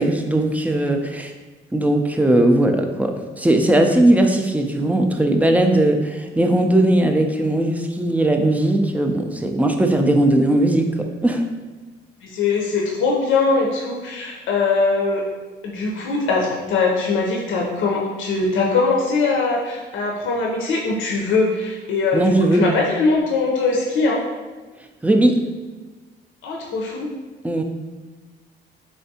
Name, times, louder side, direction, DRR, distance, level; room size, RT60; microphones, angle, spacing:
voice 1, 0.0-1.3 1.7-11.4 22.1-22.7 25.0-25.4 27.4-27.6, right 1 dB, 10° right, 4 dB, 0.3 m, -18 dB
voice 2, 12.2-15.2 15.6-24.2 26.4-27.1, left 3 dB, 80° left, -1 dB, 0.6 m, -21 dB
3.4 x 3.3 x 2.7 m, 1.3 s
cardioid pair, 90°, 20 cm